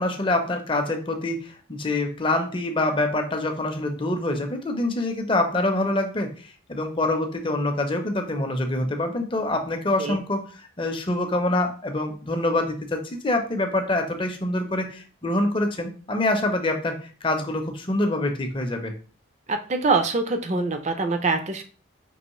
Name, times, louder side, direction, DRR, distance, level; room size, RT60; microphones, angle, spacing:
voice 1, 0.0-18.9, left 2 dB, 25° left, 4 dB, 0.6 m, -25 dB
voice 2, 19.5-21.6, right 3 dB, 35° right, 7 dB, 0.5 m, -24 dB
5.4 x 3.0 x 3.0 m, 0.40 s
head